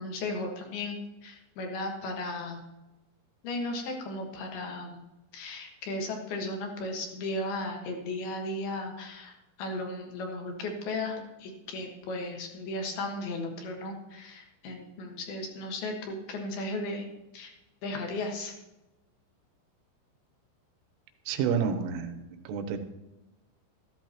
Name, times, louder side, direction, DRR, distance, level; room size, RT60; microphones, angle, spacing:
voice 1, 0.0-2.6 3.4-5.0 5.3-17.1 17.3-17.5 17.8-18.5, left 2 dB, 60° left, 2 dB, 2.9 m, -35 dB
voice 2, 21.3-22.8, right 7 dB, 80° right, 8 dB, 3.5 m, -30 dB
14.0 x 13.5 x 3.0 m, 0.99 s
omnidirectional pair, 5.9 m